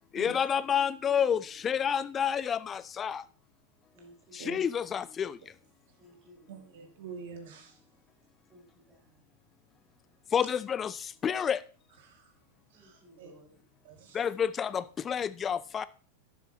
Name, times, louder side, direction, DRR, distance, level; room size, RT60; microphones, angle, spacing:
voice 1, 0.1-3.2 4.3-5.4 10.3-11.6 14.1-15.9, left 8 dB, 25° left, 17 dB, 0.6 m, -29 dB
voice 2, 3.9-4.7 6.0-6.7 8.5-9.2 12.7-13.6, equal, 20° right, -6 dB, 5.4 m, -58 dB
voice 3, 6.5-7.8 12.0-12.3 12.7-13.3 13.8-14.2, right 5 dB, 55° right, 4 dB, 2.4 m, -46 dB
12.0 x 10.5 x 3.0 m, 0.40 s
figure-of-eight pair, 90°, 0 cm